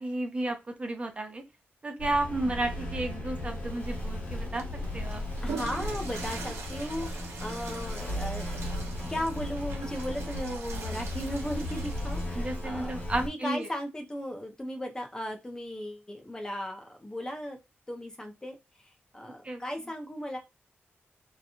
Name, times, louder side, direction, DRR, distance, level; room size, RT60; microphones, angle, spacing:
voice 1, 0.0-1.4 1.8-4.7 4.9-5.2 12.4-13.7 19.4-19.6, right 2 dB, 30° right, 5 dB, 0.5 m, -32 dB
sound 1, 2.0-13.3, left 1 dB, 50° left, 1.4 m, -35 dB
Water / Toilet flush, 4.5-12.8, right 5 dB, 85° right, 0.7 m, -43 dB
voice 2, 5.4-8.5 9.1-17.6 17.9-18.5 18.8-20.4, equal, 15° left, 3 dB, 0.6 m, -36 dB
2.8 x 2.2 x 2.7 m, 0.23 s
wide cardioid pair, 150°, 4 cm